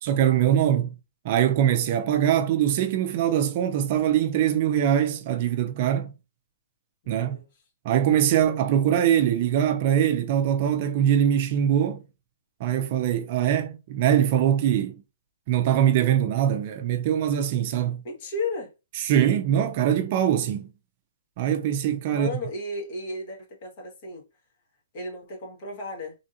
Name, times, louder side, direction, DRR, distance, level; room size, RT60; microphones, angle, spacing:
voice 1, 0.0-0.9 1.2-6.1 7.1-7.4 7.8-12.0 12.6-15.0 15.5-18.0 19.0-20.7 21.4-22.3, right 10 dB, 40° right, 0.4 m, -22 dB
voice 2, 7.0-7.5 18.0-18.7 22.1-24.2 24.9-26.1, left 2 dB, 45° left, 1.6 m, -34 dB
3.8 x 3.4 x 2.7 m
hypercardioid pair, 160°, 0 cm